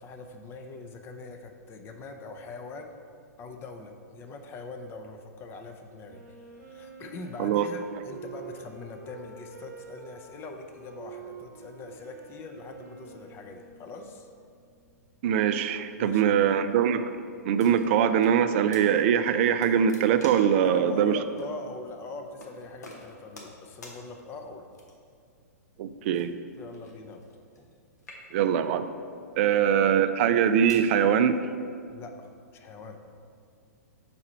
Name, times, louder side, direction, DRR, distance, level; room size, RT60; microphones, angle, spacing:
voice 1, 0.0-3.0 3.4-6.2 6.5-14.3 16.0-16.4 20.6-24.7 26.6-27.2 27.6-27.7 29.5-29.6 31.9-33.0, left 3 dB, 25° left, 5 dB, 0.6 m, -42 dB
Wind instrument woodwind instrument, 6.0-14.6, right 4 dB, 70° right, 0.8 m, -48 dB
voice 2, 15.2-21.2 25.8-26.4 28.3-28.9 29.4-31.4, right 8 dB, 45° right, 11 dB, 0.3 m, -23 dB
sound 1, 17.6-18.4 18.7-18.9 19.3-20.6 21.4-21.5 22.4-22.5 22.8-23.6 23.8-24.0 24.7-25.2 26.1-27.7 28.0-28.6 29.3-29.5 30.2-30.9, left 2 dB, 75° left, 1.2 m, -48 dB
4.8 x 4.1 x 5.6 m, 2.3 s
figure-of-eight pair, 110°, 9 cm